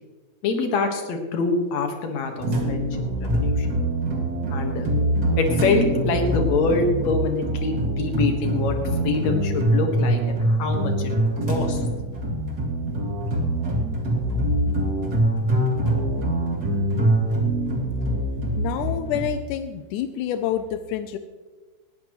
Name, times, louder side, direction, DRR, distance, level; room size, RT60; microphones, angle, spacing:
voice 1, 0.4-2.9 3.2-3.7 4.5-4.9 5.4-11.1 11.5-11.8 12.3-12.4 14.7-14.8, left 4 dB, 65° left, 4 dB, 2.8 m, -25 dB
sound 1, 2.4-19.3, right 1 dB, 35° right, 2.4 m, -24 dB
voice 2, 18.6-21.2, left 10 dB, 90° left, 9 dB, 2.1 m, -28 dB
19.5 x 14.5 x 3.1 m, 1.3 s
omnidirectional pair, 3.5 m